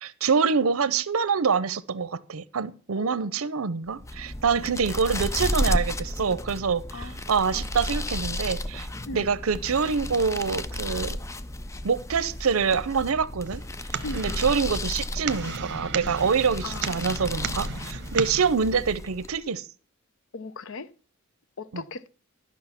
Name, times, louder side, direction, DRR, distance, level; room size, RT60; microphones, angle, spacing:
voice 1, 0.0-8.9 9.1-11.2 11.8-13.6 14.1-19.7 21.7-21.8, right 5 dB, 80° right, 0.6 m, -26 dB
voice 2, 3.0-3.4 4.5-4.8 6.9-7.2 7.5-7.6 9.1-9.3 14.0-14.4 16.6-17.2 20.3-20.9 21.6-22.1, left 3 dB, 65° left, 0.6 m, -38 dB
sound 1, 3.9-19.4, left 1 dB, 15° left, 0.5 m, -33 dB
sound 2, 13.5-18.5, right 6 dB, 55° right, 0.9 m, -35 dB
12.0 x 6.2 x 5.8 m
head